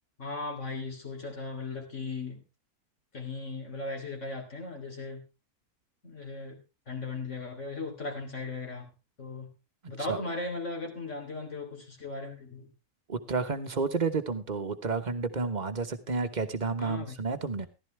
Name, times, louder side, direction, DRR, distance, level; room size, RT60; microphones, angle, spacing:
voice 1, 0.2-2.4 3.1-5.2 6.0-6.6 6.9-8.9 9.2-9.5 9.9-12.7 16.8-17.1, left 3 dB, 50° left, 2 dB, 3.6 m, -37 dB
voice 2, 13.1-17.7, right 4 dB, 30° right, 8 dB, 1.1 m, -31 dB
14.5 x 12.5 x 3.3 m, 0.28 s
omnidirectional pair, 1.6 m